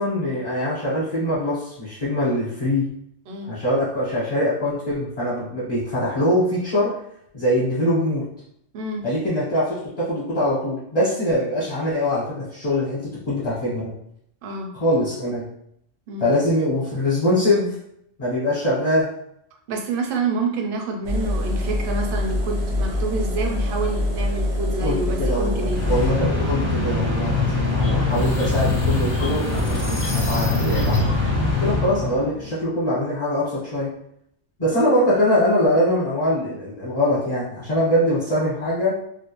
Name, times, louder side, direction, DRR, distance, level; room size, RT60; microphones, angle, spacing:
voice 1, 0.0-2.9 3.5-7.0 7.3-8.3 9.0-13.9 14.7-15.5 16.2-17.8 18.2-19.1 24.8-31.1 31.6-33.9 34.6-39.0, left 1 dB, 40° left, -8 dB, 0.9 m, -23 dB
voice 2, 14.4-14.7 16.1-16.3 19.7-25.8, right 3 dB, 60° right, 2 dB, 0.6 m, -28 dB
Engine, 21.0-26.1, left 1 dB, 90° right, 1.0 m, -24 dB
sound 1, 25.7-32.5, left 3 dB, 15° right, 0.5 m, -23 dB
sound 2, 27.8-31.3, right 1 dB, 55° left, 0.3 m, -29 dB
2.4 x 2.1 x 2.9 m, 0.72 s
omnidirectional pair, 1.2 m